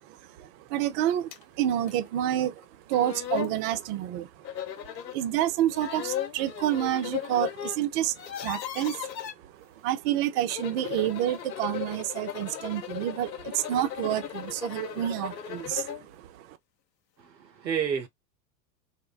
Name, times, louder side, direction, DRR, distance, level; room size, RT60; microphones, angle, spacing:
voice 1, 0.4-1.3 1.6-4.3 5.1-8.1 8.4-9.0 9.8-16.5, right 12 dB, 35° right, 0.4 m, -28 dB
sound 1, 1.3-1.4 1.9-2.0 2.6-2.7 2.9-3.6 4.4-5.2 5.7-7.8 8.0-9.3 10.3-16.1, left 10 dB, 80° left, 0.6 m, -36 dB
voice 2, 17.2-18.1, right 7 dB, 90° right, 0.8 m, -30 dB
3.4 x 2.1 x 2.3 m
hypercardioid pair, 90°, 49 cm